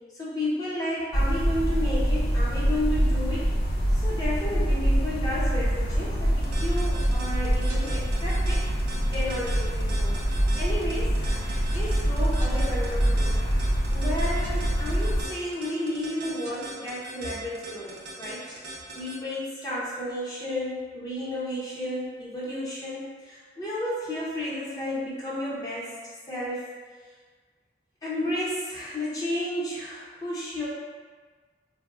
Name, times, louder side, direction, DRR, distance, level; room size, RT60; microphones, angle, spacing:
voice 1, 0.2-3.5 3.9-8.7 9.1-10.1 10.6-13.4 13.9-18.4 18.9-25.9 26.3-26.6 28.0-30.7, left 1 dB, 20° left, -8 dB, 0.7 m, -32 dB
sound 1, 1.1-15.2, equal, 60° left, 0.5 m, -25 dB
sound 2, 6.3-19.2, right 2 dB, 80° right, 0.6 m, -40 dB
3.9 x 2.0 x 2.3 m, 1.5 s
head